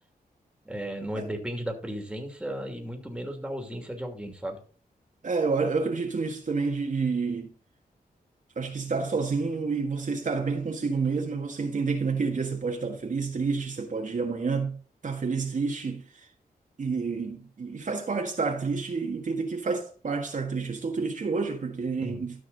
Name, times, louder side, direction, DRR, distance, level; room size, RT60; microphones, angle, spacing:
voice 1, 0.6-4.6 22.0-22.3, equal, 5° right, 2.6 m, -35 dB
voice 2, 5.2-7.5 8.6-16.3 16.8-22.4, right 4 dB, 55° right, 1.7 m, -29 dB
13.0 x 5.8 x 4.0 m
cardioid pair, 80°, 16 cm